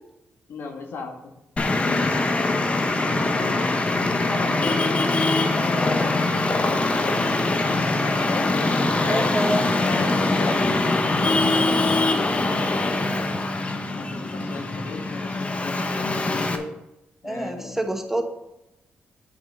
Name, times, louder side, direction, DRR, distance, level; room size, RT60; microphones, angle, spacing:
voice 1, 0.5-1.3 1.7-3.0 3.3-7.3 7.8-9.3 9.8-10.9 11.2-12.6 13.1-13.6 13.9-16.7 17.2-17.9, left 4 dB, 70° left, 3 dB, 1.7 m, -36 dB
Traffic noise roadway noise, 1.6-16.6, left 2 dB, 30° left, 1.0 m, -23 dB
voice 2, 9.1-9.6 17.2-18.2, right 1 dB, 10° right, 4 dB, 1.2 m, -26 dB
8.7 x 5.9 x 5.4 m, 0.89 s
cardioid pair, 100°, 4 cm